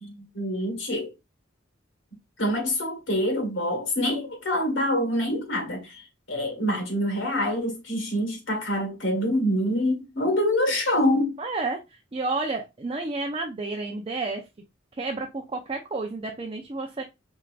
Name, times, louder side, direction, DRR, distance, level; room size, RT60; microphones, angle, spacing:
voice 1, 0.0-1.1 2.4-5.9 6.3-11.4, left 1 dB, 75° left, 1.6 m, -26 dB
voice 2, 11.4-11.8 12.1-14.5 15.0-17.0, right 3 dB, 30° right, 0.6 m, -30 dB
4.4 x 3.7 x 2.4 m
head